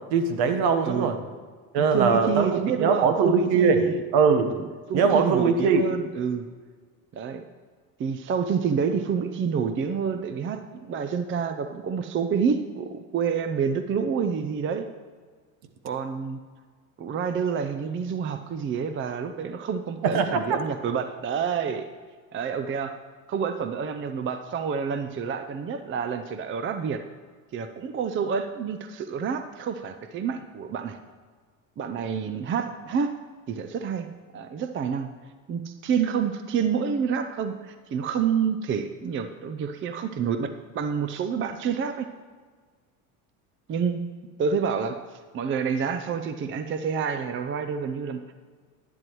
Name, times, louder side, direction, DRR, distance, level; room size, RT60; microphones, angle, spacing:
voice 1, 0.1-1.2 1.7-3.8 4.1-4.5 4.9-5.9 20.0-20.6, right 5 dB, 60° right, 7 dB, 1.2 m, -21 dB
voice 2, 1.8-4.0 4.6-6.5 7.1-7.4 8.0-14.9 15.8-16.4 17.0-21.9 22.3-23.0 23.3-27.0 27.5-31.0 31.8-33.1 33.5-34.1 34.3-35.1 35.5-42.1 43.7-44.0 44.4-45.0 45.3-48.3, right 6 dB, 30° right, 9 dB, 0.5 m, -28 dB
11.0 x 10.5 x 3.1 m, 1.6 s
supercardioid pair, 90°, 42 cm